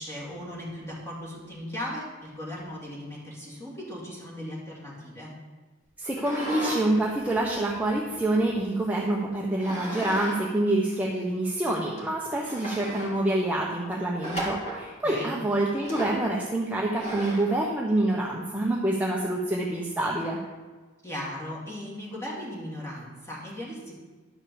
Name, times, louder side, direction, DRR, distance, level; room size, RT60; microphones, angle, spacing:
voice 1, 0.0-5.3 15.0-15.4 21.0-23.9, left 1 dB, 10° left, -5 dB, 2.7 m, -37 dB
voice 2, 6.0-20.4, right 1 dB, 5° right, -3 dB, 0.9 m, -27 dB
sound 1, 6.1-6.8 7.2-8.6 9.6-10.4 10.7-10.8 11.5-11.6 12.0-12.1 12.4-13.1 14.2-14.8 15.8-16.2 17.0-17.6, right 1 dB, 30° left, 3.0 m, -34 dB
11.0 x 5.4 x 7.0 m, 1.3 s
head